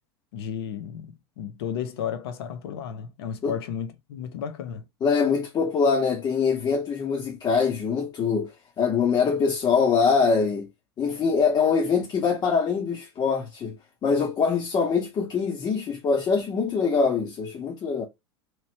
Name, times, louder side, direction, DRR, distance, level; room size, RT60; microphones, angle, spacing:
voice 1, 0.3-4.8, left 8 dB, 70° left, 0.8 m, -33 dB
voice 2, 5.0-8.5 8.8-10.7 11.0-13.8 14.0-18.1, left 5 dB, 30° left, 0.8 m, -23 dB
3.0 x 3.0 x 2.8 m
hypercardioid pair, 95°, 14 cm